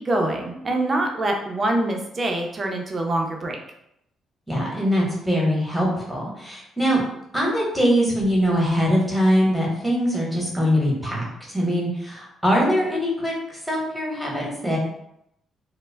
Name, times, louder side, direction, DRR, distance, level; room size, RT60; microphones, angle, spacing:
voice 1, 0.0-3.6, right 1 dB, 35° right, 2 dB, 0.5 m, -24 dB
voice 2, 4.5-7.0 7.3-14.8, equal, ahead, -4 dB, 1.0 m, -22 dB
2.1 x 2.0 x 3.2 m, 0.78 s
cardioid pair, 90°, 0 cm